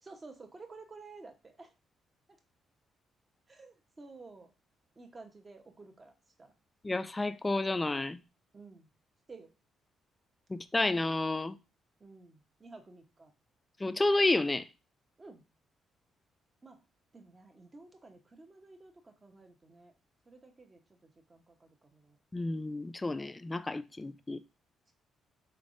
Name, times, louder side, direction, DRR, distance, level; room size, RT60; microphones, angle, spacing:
voice 1, 0.0-1.7 2.3-2.4 3.5-4.5 4.9-6.5 8.5-8.9 9.3-9.5 12.0-13.3 15.2-15.5 16.6-16.8 17.1-19.9 20.2-22.2 24.9-25.0, right 3 dB, 30° right, 0.9 m, -53 dB
voice 2, 6.8-8.2 10.5-11.6 13.8-14.7 22.3-24.4, left 2 dB, 20° left, 0.3 m, -30 dB
4.1 x 3.4 x 2.5 m
cardioid pair, 90°, 0 cm